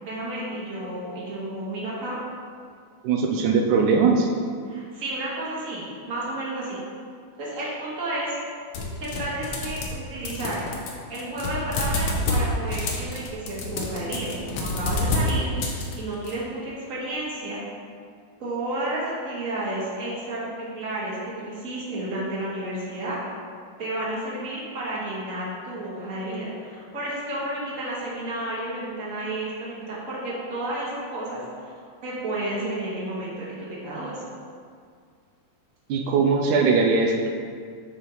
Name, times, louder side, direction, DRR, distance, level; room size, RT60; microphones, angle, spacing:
voice 1, 0.0-2.2 4.7-6.8 7.4-8.4 9.0-10.6 11.1-15.5 15.9-17.6 18.4-23.2 23.8-31.7 32.0-34.2, right 1 dB, 30° right, -8 dB, 2.0 m, -31 dB
voice 2, 3.0-4.3 35.9-37.3, right 4 dB, 85° right, 1 dB, 2.1 m, -20 dB
sound 1, 8.7-10.0 10.3-16.3, left 2 dB, 65° left, 1.5 m, -28 dB
8.9 x 6.7 x 3.2 m, 2.1 s
omnidirectional pair, 3.5 m